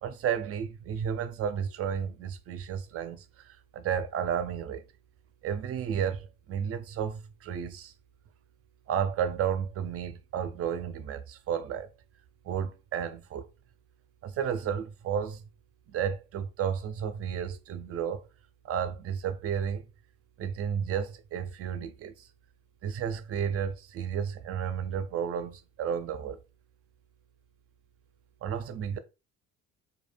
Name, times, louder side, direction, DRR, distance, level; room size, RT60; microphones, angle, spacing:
voice 1, 0.0-4.8 5.4-7.9 8.9-11.9 12.4-13.4 14.2-15.4 15.9-18.3 18.6-19.8 20.4-22.1 22.8-26.4 28.4-29.0, right 8 dB, 50° right, 0.4 m, -32 dB
2.2 x 2.1 x 3.2 m
cardioid pair, 90°, 30 cm